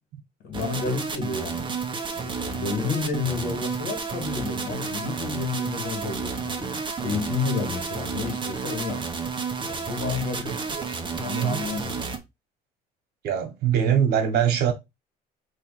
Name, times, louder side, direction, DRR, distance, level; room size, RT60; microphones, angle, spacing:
voice 1, 0.4-1.7 2.1-9.1 9.6-12.1, left 5 dB, 80° left, 2.3 m, -31 dB
sound 1, 0.5-12.2, right 5 dB, 30° right, 0.9 m, -31 dB
voice 2, 10.4-10.8 11.3-11.6 13.2-14.7, right 9 dB, 70° right, 1.4 m, -23 dB
3.4 x 3.3 x 4.8 m
cardioid pair, 110°, 17 cm